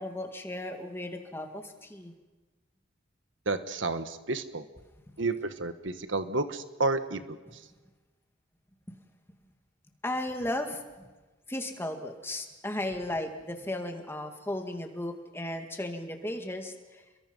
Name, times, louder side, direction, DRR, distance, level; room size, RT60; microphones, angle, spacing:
voice 1, 0.0-2.1 10.0-10.8 11.5-17.0, left 1 dB, 10° left, 5 dB, 2.1 m, -35 dB
voice 2, 3.4-4.6 5.2-7.2, right 3 dB, 70° right, 10 dB, 1.4 m, -30 dB
28.5 x 22.5 x 5.4 m, 1.2 s
head